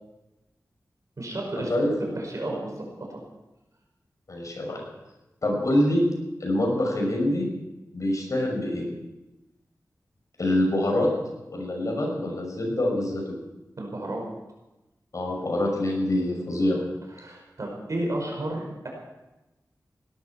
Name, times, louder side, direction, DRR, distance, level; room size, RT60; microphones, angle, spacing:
voice 1, 1.2-1.7 2.2-3.2 13.8-14.2 17.2-18.9, right 1 dB, 60° right, 0 dB, 5.5 m, -32 dB
voice 2, 4.3-4.8 5.4-6.0 6.4-7.5 7.9-8.9 10.4-11.1 11.5-13.2 15.1-16.8, left 1 dB, 55° left, 0 dB, 6.1 m, -25 dB
17.5 x 12.5 x 6.0 m, 1.0 s
wide cardioid pair, 80°, 6 cm